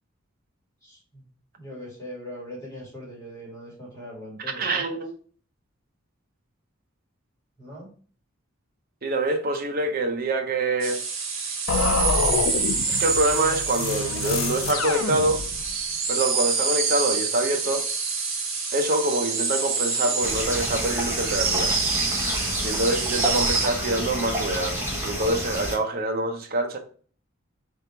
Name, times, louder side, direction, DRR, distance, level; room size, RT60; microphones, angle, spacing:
voice 1, 0.8-1.2 1.6-4.8 7.6-7.9, equal, 15° left, 2.2 m, -40 dB
voice 2, 4.6-5.1 9.0-11.0 12.9-15.4 16.1-17.9 18.7-21.7 22.6-24.8 25.0-26.8, right 2 dB, 45° right, 0.7 m, -25 dB
sound 1, 10.8-23.7, right 5 dB, 75° right, 1.4 m, -27 dB
sound 2, 11.7-15.8, left 5 dB, 85° left, 0.4 m, -27 dB
sound 3, 20.2-25.8, equal, 10° right, 1.3 m, -29 dB
3.5 x 3.4 x 4.3 m
head